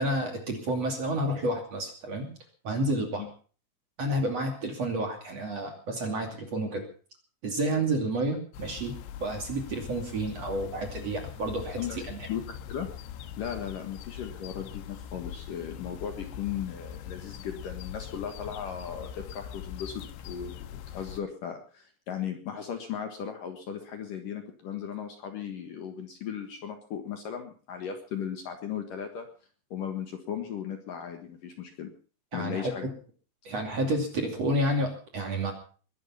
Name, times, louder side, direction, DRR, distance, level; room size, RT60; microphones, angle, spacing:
voice 1, 0.0-2.3 2.6-3.2 4.0-6.8 7.4-8.9 9.2-12.3 32.3-32.9 33.4-35.5, right 1 dB, 40° right, 3 dB, 3.2 m, -30 dB
sound 1, 8.5-21.2, left 9 dB, 85° left, 3.6 m, -42 dB
voice 2, 12.3-12.9 13.4-29.3 29.7-31.9 32.3-32.9, left 8 dB, 60° left, 5 dB, 2.7 m, -37 dB
22.0 x 11.5 x 5.7 m, 0.41 s
omnidirectional pair, 5.3 m